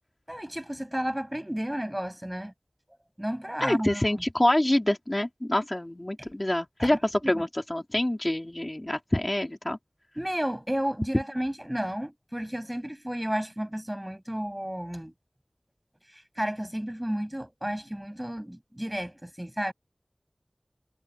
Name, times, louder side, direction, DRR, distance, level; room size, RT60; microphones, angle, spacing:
voice 1, 0.3-2.5 3.2-4.2 6.2-6.3 6.8-6.9 7.2-7.4 10.2-15.1 16.1-19.7, equal, 15° right, 7.2 m, -32 dB
voice 2, 3.6-9.8, left 1 dB, 35° left, 2.3 m, -26 dB
wide cardioid pair, 40°, 0 cm